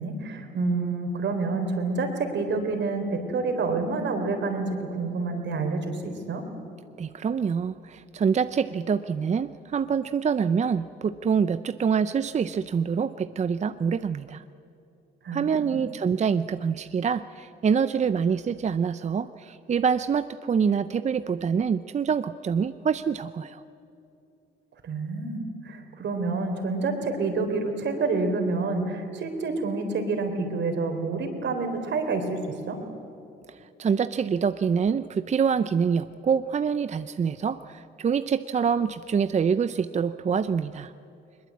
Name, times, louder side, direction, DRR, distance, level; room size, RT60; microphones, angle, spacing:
voice 1, 0.0-4.7 5.0-6.4 15.2-15.8 24.8-32.4 32.7-32.8, right 3 dB, 65° right, 5 dB, 3.9 m, -28 dB
voice 2, 7.0-14.4 15.3-23.6 33.5-40.9, right 6 dB, 35° right, 12 dB, 0.6 m, -26 dB
21.5 x 21.0 x 8.6 m, 2.8 s
cardioid pair, 90°, 20 cm